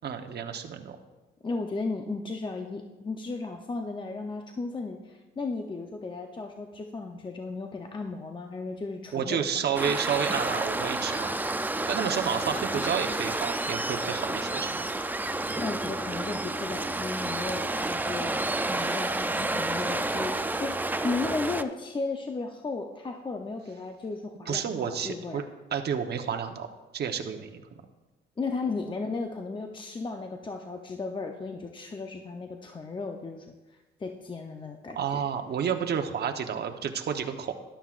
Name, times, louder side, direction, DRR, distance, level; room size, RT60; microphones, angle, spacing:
voice 1, 0.0-1.0 9.1-11.3 11.9-14.9 24.5-25.4 25.7-26.7 26.9-27.6 34.9-37.6, right 7 dB, 55° right, 5 dB, 1.0 m, -30 dB
voice 2, 1.4-9.7 15.6-18.4 18.7-25.4 28.4-35.2, left 3 dB, 25° left, 4 dB, 0.7 m, -35 dB
Waves surf, 9.8-21.6, right 2 dB, 10° right, 0.4 m, -30 dB
13.0 x 11.5 x 2.5 m, 1.2 s
cardioid pair, 90°, 20 cm